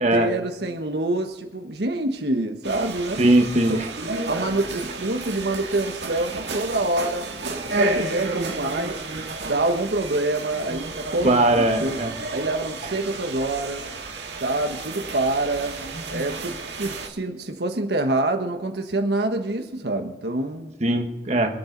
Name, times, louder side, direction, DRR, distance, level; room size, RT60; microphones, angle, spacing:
voice 1, 0.0-3.2 3.7-3.9 4.3-7.3 7.6-9.0 9.4-11.4 11.8-12.0 12.3-13.8 14.4-15.7 16.1-20.7, right 2 dB, 70° right, 5 dB, 1.4 m, -26 dB
sound 1, 2.6-17.1, right 2 dB, 90° right, 2.2 m, -31 dB
voice 2, 3.2-3.9 11.2-12.1 20.8-21.6, right 1 dB, 40° right, 4 dB, 1.4 m, -20 dB
26.5 x 8.9 x 4.0 m, 1.1 s
head